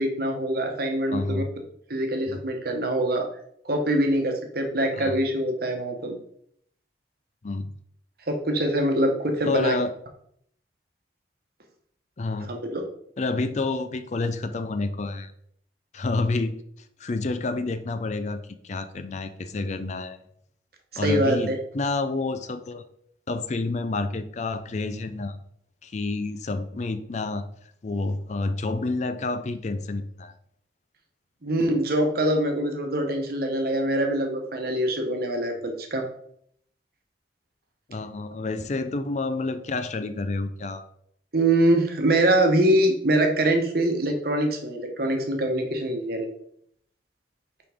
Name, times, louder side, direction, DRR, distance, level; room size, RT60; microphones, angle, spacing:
voice 1, 0.0-1.4 1.9-3.3 3.6-6.2 8.3-9.8 12.5-12.8 21.0-21.6 31.4-36.1 41.3-46.3, right 1 dB, 55° right, 4 dB, 1.0 m, -24 dB
voice 2, 1.1-1.5 2.3-2.4 5.0-5.2 7.4-7.7 9.4-9.9 12.2-12.5 13.2-15.3 15.9-16.6 17.0-20.2 21.0-22.8 23.3-25.4 25.8-27.4 27.8-30.3 37.9-40.8, left 3 dB, 40° left, 10 dB, 0.4 m, -29 dB
5.9 x 5.0 x 3.5 m, 0.68 s
head